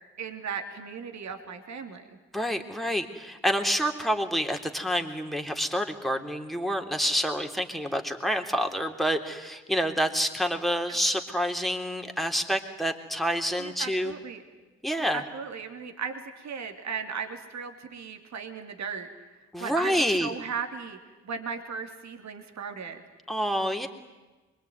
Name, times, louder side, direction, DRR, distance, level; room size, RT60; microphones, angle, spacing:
voice 1, 0.2-2.1 10.9-11.0 13.6-14.4 15.1-19.1 19.6-21.0 21.2-23.0, right 6 dB, 55° right, 6 dB, 2.9 m, -36 dB
voice 2, 2.3-14.1 14.8-15.2 19.5-20.3 23.3-23.9, equal, ahead, 4 dB, 3.6 m, -28 dB
25.0 x 22.5 x 9.5 m, 1.2 s
hypercardioid pair, 40°, 33 cm